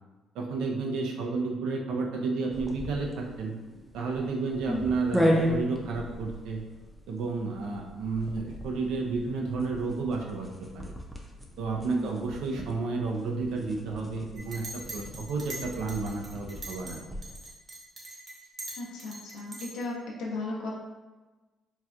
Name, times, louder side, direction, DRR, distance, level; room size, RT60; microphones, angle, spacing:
voice 1, 0.3-3.5 3.9-6.6 7.1-10.5 10.7-10.9 11.6-17.2, right 3 dB, 80° right, 1 dB, 0.5 m, -31 dB
sound 1, 2.5-17.4, equal, ahead, 0.5 m, -35 dB
Chink clink, 14.3-17.0 17.2-19.9, right 2 dB, 30° right, 1.0 m, -42 dB
voice 2, 18.8-20.7, left 2 dB, 90° left, -3 dB, 0.6 m, -35 dB
4.1 x 2.2 x 2.4 m, 1.2 s
cardioid pair, 90°, 0 cm